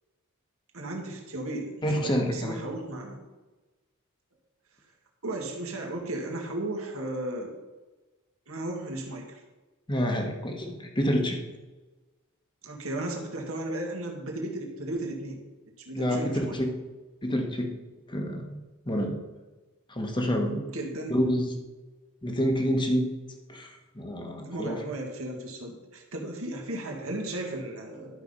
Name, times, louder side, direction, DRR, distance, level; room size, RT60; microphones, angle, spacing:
voice 1, 0.7-3.2 5.2-7.5 8.5-9.4 12.6-15.4 15.8-16.6 20.5-21.2 24.4-28.2, right 1 dB, 70° right, 1 dB, 2.1 m, -35 dB
voice 2, 1.8-2.6 9.9-11.4 15.9-16.7 17.2-17.8 18.1-19.2 19.9-20.6 21.1-21.5 22.2-23.1 23.5-24.8, equal, 20° left, 3 dB, 1.4 m, -28 dB
12.0 x 5.8 x 5.5 m, 1.2 s
head